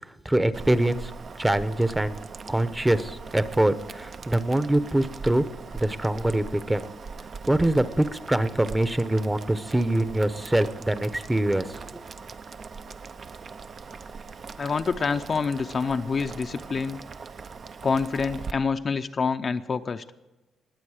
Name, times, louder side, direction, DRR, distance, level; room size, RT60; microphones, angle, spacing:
voice 1, 0.0-1.1 1.4-2.2 2.5-5.4 5.7-6.9 7.5-12.0, right 1 dB, 10° right, 13 dB, 0.8 m, -24 dB
Boiling, 0.5-18.5, right 5 dB, 45° right, 0.6 m, -41 dB
voice 2, 14.6-17.0 17.8-20.0, left 5 dB, 40° left, 8 dB, 0.6 m, -27 dB
21.0 x 8.2 x 4.9 m, 1.1 s
cardioid pair, 90°, 0 cm